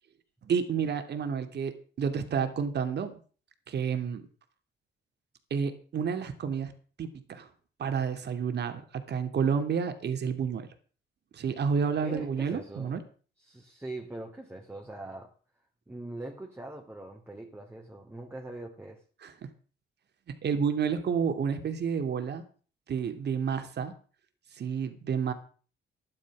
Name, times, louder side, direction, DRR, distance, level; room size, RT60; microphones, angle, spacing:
voice 1, 0.4-3.2 3.7-4.2 5.5-6.7 7.0-7.5 7.8-8.8 9.1-10.7 11.3-13.0 19.2-19.3 20.4-22.4 22.9-23.9 24.6-25.3, right 6 dB, 60° right, 2.8 m, -30 dB
voice 2, 12.0-13.0 13.4-15.3 15.9-19.0, right 2 dB, 10° right, 3.0 m, -42 dB
13.0 x 11.0 x 6.3 m
cardioid pair, 90°, 20 cm